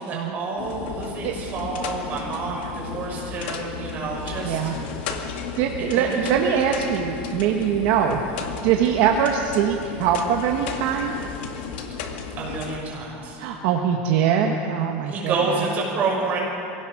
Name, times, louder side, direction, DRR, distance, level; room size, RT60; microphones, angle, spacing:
voice 1, 0.0-4.7 5.8-6.3 6.6-6.7 12.4-13.4 15.0-16.4, right 3 dB, 30° right, -3 dB, 6.2 m, -28 dB
sound 1, 0.6-12.8, left 6 dB, 80° left, 2.1 m, -34 dB
voice 2, 4.4-4.8 5.6-8.2 8.6-11.1 13.4-15.3, right 8 dB, 55° right, 2 dB, 1.4 m, -22 dB
24.0 x 17.5 x 6.5 m, 2.8 s
cardioid pair, 165°, 6 cm